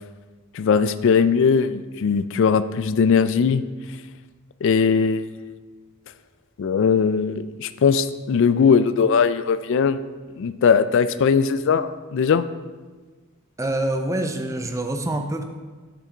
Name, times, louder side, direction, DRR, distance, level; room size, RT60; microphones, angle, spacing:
voice 1, 0.5-3.6 4.6-5.3 6.6-10.0 10.4-12.5, left 6 dB, 60° left, 14 dB, 0.3 m, -19 dB
voice 2, 13.6-15.4, right 1 dB, 15° right, 6 dB, 0.5 m, -25 dB
6.8 x 6.1 x 4.4 m, 1.4 s
head